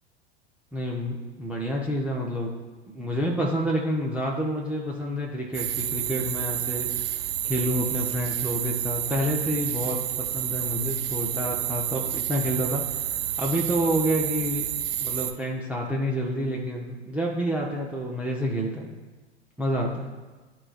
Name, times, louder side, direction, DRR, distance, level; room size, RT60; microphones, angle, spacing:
voice 1, 0.7-2.5 2.9-14.7 15.0-18.9 19.6-20.1, equal, 5° right, -3 dB, 0.6 m, -28 dB
sound 1, 5.5-15.3, right 11 dB, 65° right, 0.5 m, -29 dB
11.0 x 3.8 x 2.4 m, 1.3 s
figure-of-eight pair, 90°, 33 cm